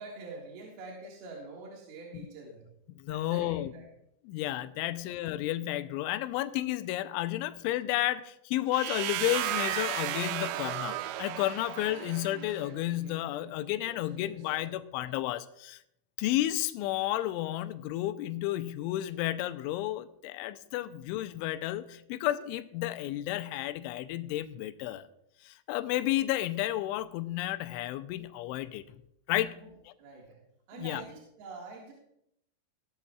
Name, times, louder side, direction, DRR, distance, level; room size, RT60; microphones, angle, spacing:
voice 1, 0.0-2.7 3.1-3.8 4.8-4.9 10.0-11.1 11.8-14.7 29.6-29.7 30.0-30.4 30.7-31.9, right 3 dB, 65° right, -3 dB, 3.4 m, -47 dB
voice 2, 3.0-3.7 4.3-10.9 11.2-15.8 16.2-25.0 25.4-28.8 29.3-29.9 30.8-31.0, left 15 dB, 85° left, 11 dB, 3.0 m, -32 dB
sound 1, 8.7-12.6, right 13 dB, 90° right, 3.1 m, -34 dB
17.0 x 12.0 x 2.3 m, 0.76 s
omnidirectional pair, 5.3 m